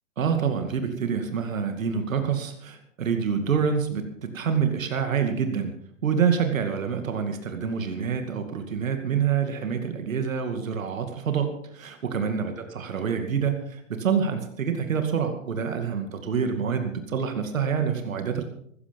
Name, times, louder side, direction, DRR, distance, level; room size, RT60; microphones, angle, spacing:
voice 1, 0.2-5.7 6.0-18.4, right 6 dB, 90° right, 6 dB, 2.4 m, -27 dB
15.0 x 14.5 x 5.3 m, 0.70 s
hypercardioid pair, 125°, 39 cm